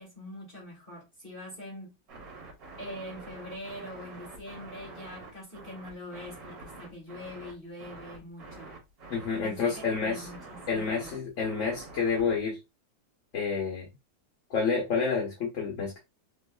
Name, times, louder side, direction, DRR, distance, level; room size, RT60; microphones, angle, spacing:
voice 1, 0.0-1.9 2.8-8.8 9.4-11.1, left 1 dB, 30° left, 1.4 m, -44 dB
sound 1, 2.1-12.4, right 3 dB, 80° right, 2.0 m, -46 dB
voice 2, 9.1-10.3 10.7-12.6 13.3-13.9 14.5-16.0, left 5 dB, 50° left, 1.1 m, -29 dB
3.8 x 2.6 x 2.2 m
omnidirectional pair, 1.9 m